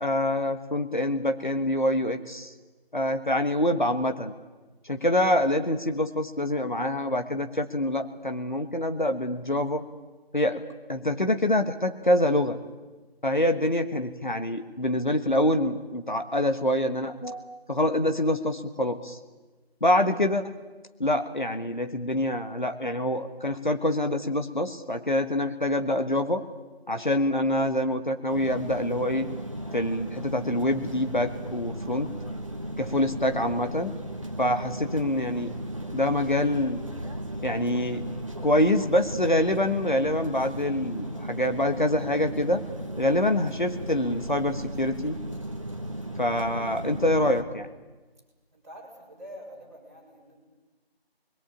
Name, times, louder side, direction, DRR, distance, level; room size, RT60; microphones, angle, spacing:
voice 1, 0.0-2.5 2.9-4.3 4.8-9.8 10.3-10.6 10.9-12.6 13.2-19.2 19.8-20.6 21.0-26.4 26.9-29.3 29.7-32.1 32.8-33.9 34.4-35.5 35.9-36.8 37.4-38.0 38.4-42.6 43.0-45.2 46.2-47.7, left 1 dB, 50° left, 7 dB, 1.4 m, -26 dB
sound 1, 28.3-47.4, right 1 dB, 30° right, 1.5 m, -36 dB
voice 2, 48.5-50.4, equal, 15° right, -6 dB, 4.5 m, -46 dB
26.0 x 21.5 x 8.7 m, 1.2 s
figure-of-eight pair, 175°, 31 cm